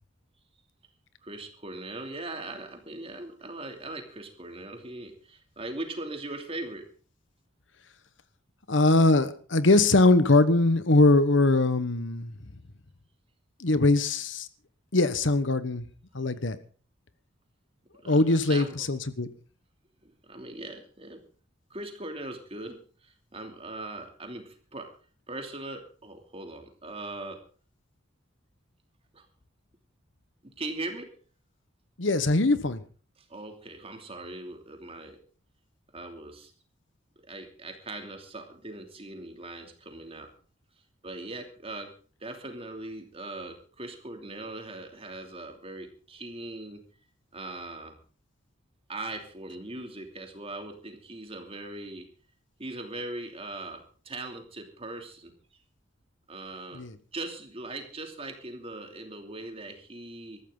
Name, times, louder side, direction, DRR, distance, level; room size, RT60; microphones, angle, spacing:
voice 1, 1.2-6.9 18.0-18.7 20.0-21.2 21.7-24.9 25.3-27.4 29.1-29.2 30.6-31.1 33.2-35.2 35.9-36.5 37.3-40.3 41.0-41.9 42.2-46.8 47.3-47.9 48.9-52.0 52.6-55.3 56.3-56.8 57.1-60.4, right 2 dB, 30° right, 2.9 m, -40 dB
voice 2, 8.7-12.3 13.6-14.5 14.9-15.9 16.1-16.6 18.1-19.3 32.0-32.8 56.7-56.9, left 2 dB, 65° left, 1.2 m, -22 dB
20.0 x 14.0 x 3.9 m
head